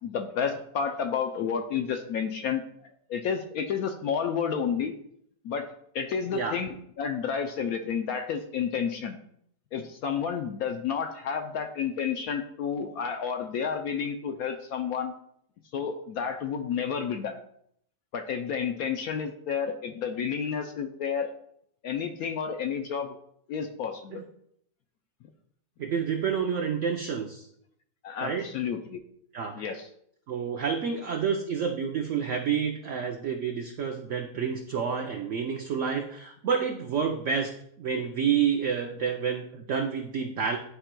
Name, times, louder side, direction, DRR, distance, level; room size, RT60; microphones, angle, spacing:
voice 1, 0.0-2.6 3.1-4.9 5.4-5.7 5.9-9.2 9.7-15.1 15.7-17.4 18.1-21.3 21.8-23.1 23.5-24.3 28.0-29.0 29.5-29.9, left 7 dB, 70° left, 5 dB, 0.9 m, -30 dB
voice 2, 25.8-27.5 28.2-28.5 29.3-29.7 30.3-37.5 37.8-40.6, right 6 dB, 70° right, 3 dB, 0.7 m, -29 dB
11.0 x 4.4 x 2.2 m, 0.70 s
omnidirectional pair, 1.9 m